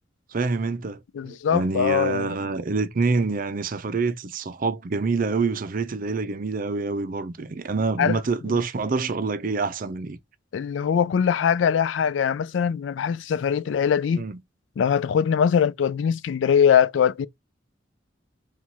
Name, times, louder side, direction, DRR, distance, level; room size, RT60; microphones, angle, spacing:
voice 1, 0.3-10.2 14.2-14.4, right 4 dB, 45° right, 0.5 m, -26 dB
voice 2, 1.1-2.4 8.0-8.2 8.5-8.6 10.5-14.3 14.8-17.3, left 7 dB, 70° left, 0.3 m, -22 dB
4.4 x 2.4 x 4.0 m
head